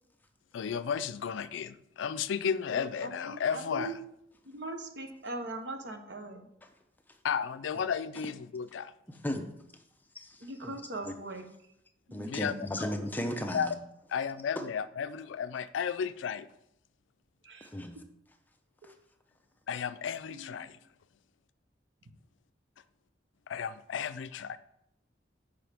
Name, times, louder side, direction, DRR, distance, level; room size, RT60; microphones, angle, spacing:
voice 1, 0.5-4.0 7.2-8.9 12.3-12.5 13.5-13.7 14.1-16.5 19.7-20.8 23.5-24.6, left 7 dB, 80° left, 14 dB, 0.4 m, -33 dB
voice 2, 2.7-3.9 4.4-6.5 10.4-11.5 12.1-12.4 17.4-17.7 20.3-20.6, right 2 dB, 65° right, 5 dB, 1.0 m, -41 dB
voice 3, 9.1-9.5 10.6-10.7 11.0-11.1 12.1-13.8 14.6-14.7 17.6-18.0 18.8-19.0, left 1 dB, 10° left, 5 dB, 0.6 m, -35 dB
8.9 x 5.5 x 3.4 m, 0.79 s
head